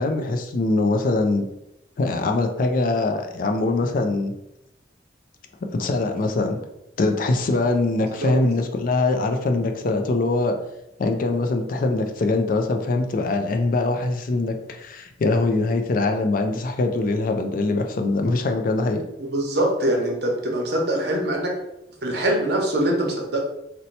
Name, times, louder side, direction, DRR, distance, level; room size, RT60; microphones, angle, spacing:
voice 1, 0.0-1.5 2.0-4.3 5.7-6.6 7.0-10.6 11.0-19.0, left 2 dB, 50° left, 5 dB, 0.4 m, -23 dB
voice 2, 19.2-21.5 22.0-23.4, right 1 dB, 65° right, 0 dB, 0.8 m, -23 dB
2.8 x 2.2 x 4.0 m, 0.86 s
head